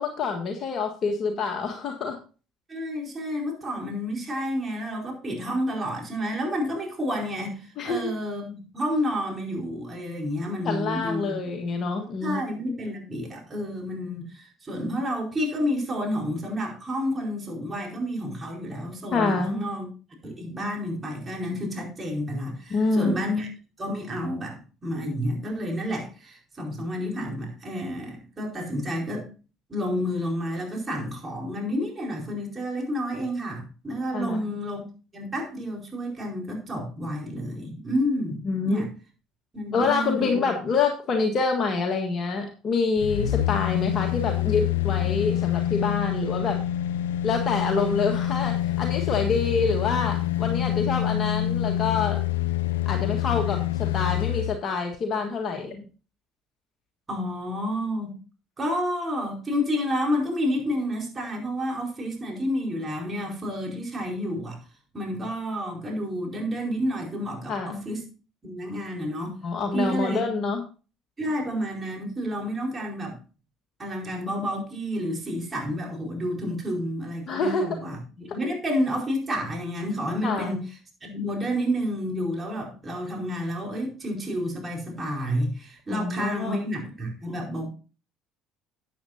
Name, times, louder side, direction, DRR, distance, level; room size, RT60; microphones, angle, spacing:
voice 1, 0.0-2.2 7.8-8.1 10.6-12.4 19.1-19.7 22.7-23.1 34.1-34.5 38.4-38.8 39.7-46.6 47.2-52.2 52.8-55.8 67.5-67.8 69.4-70.6 77.3-77.8 80.2-80.5 85.9-86.6, left 4 dB, 50° left, 2 dB, 1.6 m, -26 dB
voice 2, 2.7-11.4 12.2-19.9 20.2-23.5 23.8-29.3 29.7-34.8 35.1-38.4 38.6-38.9 39.5-40.4 57.1-58.1 58.6-64.6 64.9-68.0 68.4-69.4 69.7-70.3 71.2-73.2 73.8-80.6 81.0-87.7, equal, 30° right, 0 dB, 4.6 m, -30 dB
sound 1, 43.0-54.6 54.9-55.0, left 12 dB, 80° left, 0.6 m, -26 dB
12.5 x 8.7 x 2.7 m, 0.35 s
hypercardioid pair, 60°, 0 cm